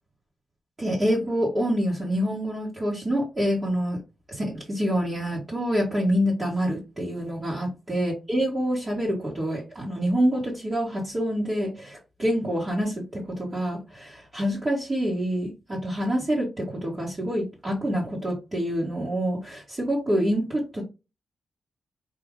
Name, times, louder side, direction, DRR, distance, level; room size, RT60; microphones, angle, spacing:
voice 1, 0.8-4.0 4.3-20.8, equal, 25° right, -6 dB, 1.5 m, -26 dB
4.8 x 2.6 x 3.6 m, 0.27 s
wide cardioid pair, 130°, 0 cm